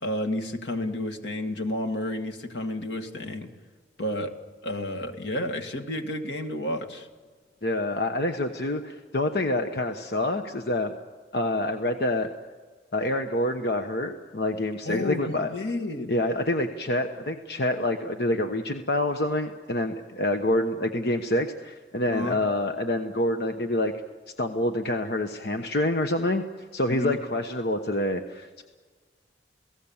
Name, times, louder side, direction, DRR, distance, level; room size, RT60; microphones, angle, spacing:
voice 1, 0.0-3.5 4.0-4.3 4.6-7.1 14.8-16.1 22.1-22.4 26.9-27.2, left 1 dB, 85° left, 5 dB, 2.1 m, -31 dB
voice 2, 7.6-10.9 11.3-12.3 12.9-15.5 16.1-23.9 24.4-26.4 26.7-28.6, left 1 dB, 65° left, 5 dB, 1.2 m, -27 dB
29.0 x 18.0 x 7.3 m, 1.4 s
head